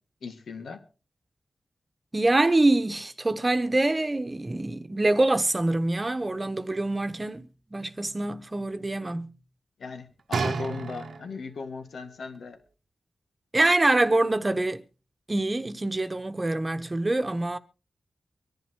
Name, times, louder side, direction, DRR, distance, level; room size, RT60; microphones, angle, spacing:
voice 1, 0.2-0.8 9.8-12.6, left 4 dB, 90° left, 2.2 m, -37 dB
voice 2, 2.1-9.3 13.5-14.8 15.3-17.6, right 2 dB, 25° right, 1.1 m, -25 dB
sound 1, 10.3-11.6 12.4-12.5, right 5 dB, 80° right, 1.0 m, -31 dB
24.5 x 11.0 x 3.1 m
wide cardioid pair, 80°, 0 cm